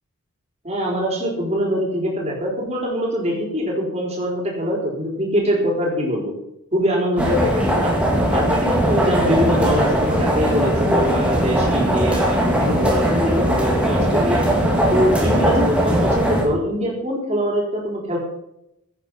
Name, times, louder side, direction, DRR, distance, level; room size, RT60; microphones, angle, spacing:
voice 1, 0.6-6.3 6.7-7.9 8.3-14.5 14.9-18.2, equal, 30° right, -2 dB, 4.5 m, -23 dB
sound 1, 7.2-16.4, equal, 5° right, 2.7 m, -19 dB
15.5 x 9.4 x 5.7 m, 0.81 s
head